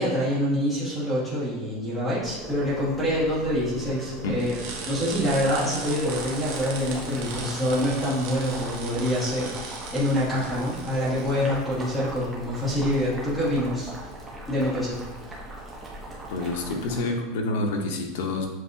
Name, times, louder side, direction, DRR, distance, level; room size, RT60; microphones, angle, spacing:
voice 1, 0.0-13.9 14.5-15.0, equal, 5° left, -10 dB, 1.4 m, -26 dB
Boiling, 2.2-17.0, right 1 dB, 15° right, 0.8 m, -39 dB
sound 1, 4.4-11.6, right 4 dB, 60° right, 0.8 m, -38 dB
voice 2, 16.3-18.5, left 2 dB, 70° left, 3 dB, 0.7 m, -28 dB
7.4 x 2.7 x 2.6 m, 1.0 s
supercardioid pair, 175°, 0 cm